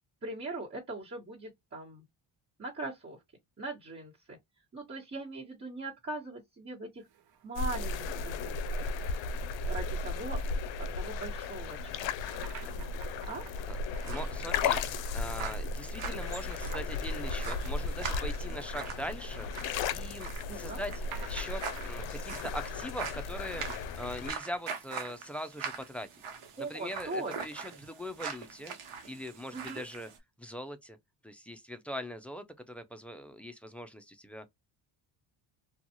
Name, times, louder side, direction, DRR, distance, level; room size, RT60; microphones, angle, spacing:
voice 1, 0.2-2.0 2.6-3.2 3.6-4.4 4.7-7.0 7.4-8.9 9.7-10.4 10.8-12.1 13.3-13.4 20.5-20.8 26.6-27.3 27.6-27.7 29.5-29.9, right 2 dB, 25° right, 1.4 m, -40 dB
sound 1, 7.0-16.2 17.3-22.9, right 8 dB, 50° right, 0.7 m, -53 dB
sound 2, 7.6-24.3, left 4 dB, 65° left, 0.6 m, -35 dB
voice 2, 14.0-14.8 15.1-19.5 19.9-26.1 26.6-28.7 29.1-30.1 30.4-31.0 31.2-34.5, equal, 5° left, 0.4 m, -41 dB
sound 3, 14.0-30.2, right 6 dB, 80° right, 0.9 m, -43 dB
2.4 x 2.3 x 2.8 m
cardioid pair, 95°, 50 cm